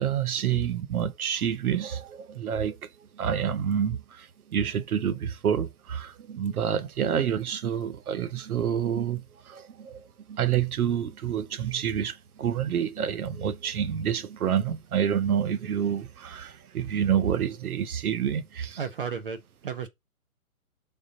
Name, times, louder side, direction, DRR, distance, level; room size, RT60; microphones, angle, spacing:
voice 1, 0.0-2.8 3.2-10.0 10.3-18.8, right 8 dB, 75° right, 0.8 m, -28 dB
voice 2, 18.8-19.9, right 6 dB, 40° right, 0.5 m, -33 dB
4.8 x 3.5 x 2.7 m
hypercardioid pair, 155°, 44 cm